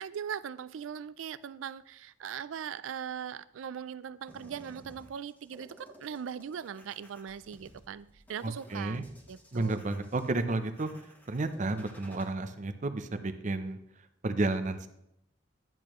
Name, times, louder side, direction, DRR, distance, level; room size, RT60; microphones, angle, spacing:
voice 1, 0.0-9.8, right 8 dB, 90° right, 0.4 m, -40 dB
sound 1, 4.3-12.3, equal, 10° left, 1.2 m, -56 dB
voice 2, 8.4-9.0 9.5-10.9 11.3-13.8 14.2-14.9, right 2 dB, 40° right, 0.6 m, -31 dB
10.5 x 8.2 x 3.0 m
head